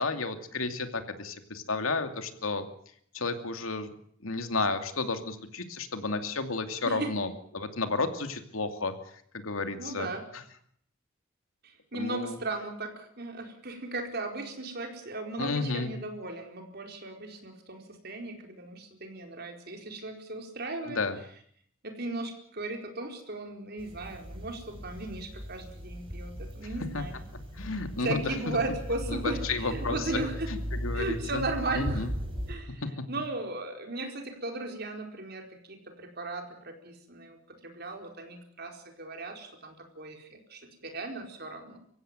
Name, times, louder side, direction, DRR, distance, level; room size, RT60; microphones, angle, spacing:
voice 1, 0.0-2.7 3.1-3.9 4.2-8.9 9.3-10.4 11.9-12.4 15.4-15.9 20.9-21.2 26.9-27.0 27.6-28.6 29.1-31.4 31.7-32.1 32.8-32.9, left 3 dB, 80° left, 7 dB, 2.6 m, -32 dB
voice 2, 9.8-10.3 11.6-21.0 21.8-27.2 28.0-30.5 30.9-32.1 32.5-41.8, right 2 dB, 50° right, 4 dB, 4.5 m, -36 dB
sound 1, 23.8-32.5, equal, 25° right, 6.0 m, -38 dB
25.0 x 15.5 x 9.1 m, 0.64 s
head